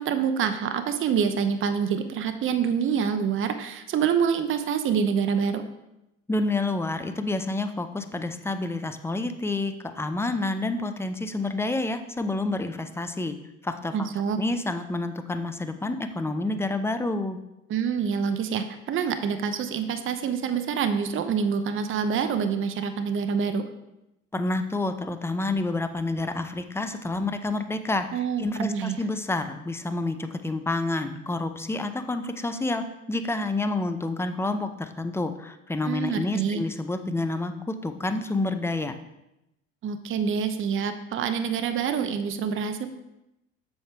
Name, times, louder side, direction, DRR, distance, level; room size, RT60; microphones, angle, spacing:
voice 1, 0.0-5.6 13.9-14.4 17.7-23.6 28.1-29.0 35.8-36.6 39.8-42.9, right 7 dB, 30° right, 9 dB, 0.8 m, -26 dB
voice 2, 6.3-13.4 13.6-14.1 14.4-17.4 24.3-39.0, left 2 dB, 5° left, 8 dB, 0.5 m, -29 dB
7.7 x 6.6 x 3.4 m, 0.90 s
hypercardioid pair, 80°, 39 cm